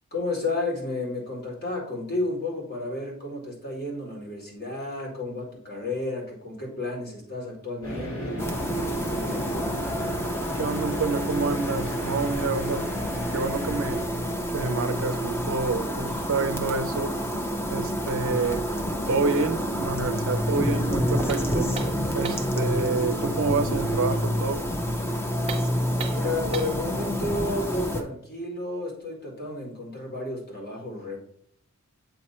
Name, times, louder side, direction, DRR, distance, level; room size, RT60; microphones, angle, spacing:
voice 1, 0.1-9.7 26.1-31.2, left 2 dB, 45° left, 1.8 m, -32 dB
sound 1, 7.8-14.1, equal, 70° left, 2.5 m, -35 dB
sound 2, 8.4-28.0, equal, 10° left, 0.5 m, -28 dB
voice 2, 10.5-12.9 13.3-14.1 14.5-17.2 17.7-18.6 19.1-21.7 22.1-24.7, right 4 dB, 60° right, 0.4 m, -28 dB
sound 3, 21.3-22.6 25.4-26.9, right 5 dB, 25° right, 0.7 m, -37 dB
7.8 x 3.0 x 4.2 m
head